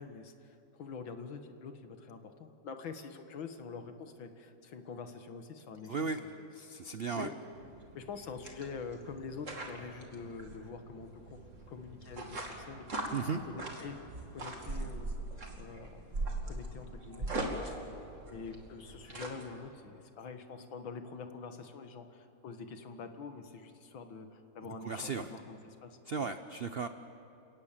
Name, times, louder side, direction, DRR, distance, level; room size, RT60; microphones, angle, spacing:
voice 1, 0.0-6.3 7.2-7.3 8.0-11.4 11.7-12.9 13.4-14.0 14.3-15.1 15.6-16.0 16.5-17.3 18.3-26.3, left 5 dB, 80° left, 7 dB, 2.2 m, -45 dB
voice 2, 5.9-6.2 6.5-7.3 13.1-13.4 24.6-25.3 26.1-26.9, right 5 dB, 80° right, 9 dB, 0.5 m, -36 dB
sound 1, 7.5-19.4, right 2 dB, 40° right, 2.7 m, -41 dB
29.5 x 18.0 x 7.4 m, 2.8 s
omnidirectional pair, 2.1 m